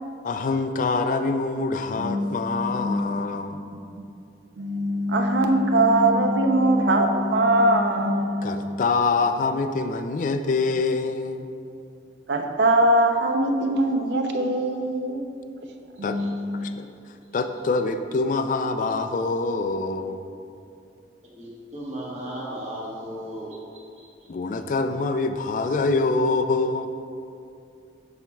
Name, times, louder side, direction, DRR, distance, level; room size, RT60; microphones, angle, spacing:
voice 1, 0.2-3.6 8.4-11.5 16.0-16.2 16.6-16.9 17.3-20.2 24.3-26.9, left 3 dB, 45° left, 8 dB, 0.3 m, -25 dB
voice 2, 2.0-3.8 4.6-8.8 12.3-15.2 16.0-16.7, right 1 dB, 70° right, 4 dB, 0.6 m, -22 dB
voice 3, 21.3-23.6 24.0-24.1, right 1 dB, 40° right, -5 dB, 1.2 m, -35 dB
12.0 x 4.3 x 2.3 m, 2.5 s
head